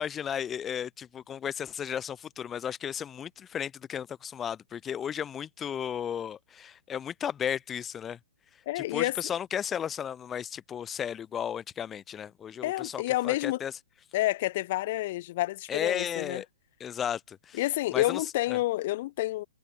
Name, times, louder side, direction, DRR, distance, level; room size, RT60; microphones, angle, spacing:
voice 1, 0.0-8.2 8.7-13.7 15.7-16.5 16.8-17.6 17.9-18.2 18.5-18.6, left 8 dB, 15° left, 1.2 m, -34 dB
voice 2, 8.7-9.2 12.6-13.6 14.1-16.4 17.5-19.5, left 17 dB, 40° left, 0.9 m, -29 dB
hypercardioid pair, 155°, 0 cm